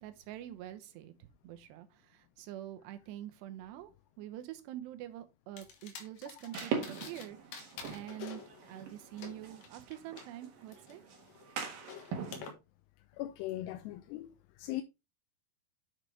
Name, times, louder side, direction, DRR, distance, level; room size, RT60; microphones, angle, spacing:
voice 1, 0.0-3.9 4.2-8.4 8.7-11.0, right 13 dB, 90° right, 3.1 m, -46 dB
sound 1, 5.6-7.3 7.5-10.2 10.7-12.5, left 7 dB, 65° left, 2.8 m, -49 dB
sound 2, 6.5-12.5, right 6 dB, 65° right, 2.9 m, -42 dB
voice 2, 13.2-14.3 14.6-14.8, left 15 dB, 85° left, 2.7 m, -38 dB
8.0 x 6.3 x 3.2 m
omnidirectional pair, 4.8 m